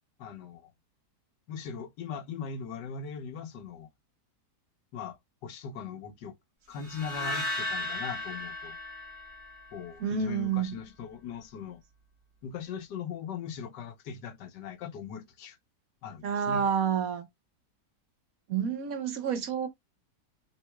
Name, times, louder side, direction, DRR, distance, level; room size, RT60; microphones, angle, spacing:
voice 1, 0.2-0.7 1.5-3.9 4.9-5.2 5.4-6.3 6.7-8.8 9.7-11.8 12.4-15.6 16.0-16.7, left 6 dB, 85° left, 1.5 m, -40 dB
sound 1, 6.8-10.0, left 1 dB, 20° right, 2.4 m, -36 dB
voice 2, 10.0-10.8 16.2-17.3 18.5-19.7, right 7 dB, 60° right, 1.4 m, -29 dB
6.1 x 3.7 x 2.3 m
omnidirectional pair, 1.8 m